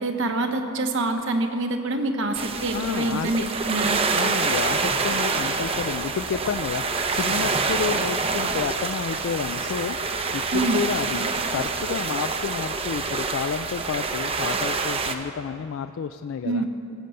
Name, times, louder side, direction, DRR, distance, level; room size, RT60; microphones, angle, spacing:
voice 1, 0.0-4.0 10.5-10.8 16.4-16.7, right 2 dB, 60° right, 5 dB, 1.1 m, -26 dB
sound 1, 2.3-15.2, right 4 dB, 25° right, 0.6 m, -26 dB
voice 2, 2.7-3.4 4.1-16.6, left 6 dB, 65° left, 9 dB, 0.3 m, -30 dB
17.5 x 6.8 x 7.7 m, 2.9 s
head